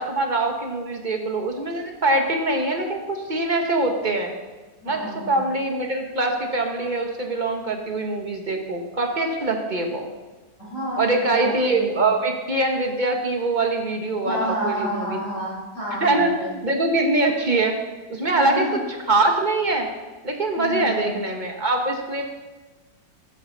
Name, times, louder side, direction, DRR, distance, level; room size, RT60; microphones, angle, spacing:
voice 1, 0.0-4.3 4.9-10.1 11.0-15.2 16.0-17.8 18.1-18.6 19.1-19.9 20.2-22.2, right 2 dB, 25° right, 2 dB, 1.7 m, -23 dB
voice 2, 4.8-5.5 10.6-12.1 14.2-16.6 18.3-18.8 20.6-21.1, equal, 40° left, -7 dB, 5.9 m, -30 dB
15.5 x 13.0 x 4.2 m, 1.2 s
omnidirectional pair, 1.9 m